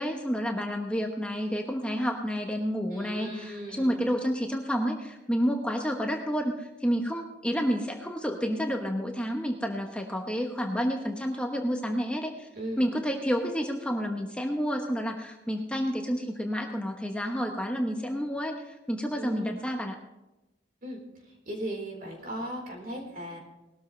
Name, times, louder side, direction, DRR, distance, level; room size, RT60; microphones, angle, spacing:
voice 1, 0.0-12.5 12.8-20.0, equal, 5° left, 2 dB, 1.0 m, -30 dB
voice 2, 2.9-4.1 12.6-12.9 19.2-19.5 20.8-23.4, right 1 dB, 50° right, 0 dB, 4.3 m, -37 dB
19.5 x 13.0 x 3.3 m, 1.0 s
head